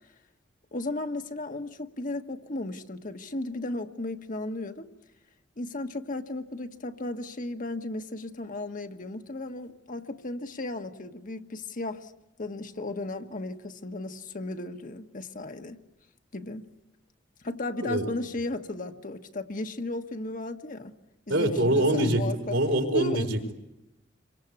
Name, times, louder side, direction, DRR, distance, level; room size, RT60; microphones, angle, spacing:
voice 1, 0.7-4.9 5.6-12.1 12.4-15.8 16.3-16.6 17.4-20.9 21.3-22.6 22.9-23.3, left 2 dB, 45° left, 1.3 m, -35 dB
voice 2, 21.3-23.5, right 1 dB, 80° right, 4.9 m, -25 dB
27.5 x 24.0 x 8.4 m
head